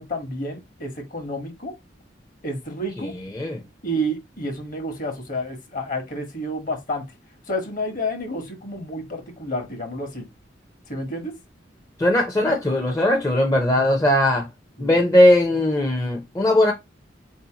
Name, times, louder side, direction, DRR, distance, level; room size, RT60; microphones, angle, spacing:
voice 1, 0.0-1.7 2.4-3.1 3.8-7.0 7.5-10.3 10.9-11.3 14.8-15.0, equal, 45° left, 1.1 m, -30 dB
voice 2, 3.0-3.6 12.0-14.5 14.8-16.7, left 1 dB, 20° left, 0.6 m, -19 dB
4.1 x 2.7 x 2.8 m
head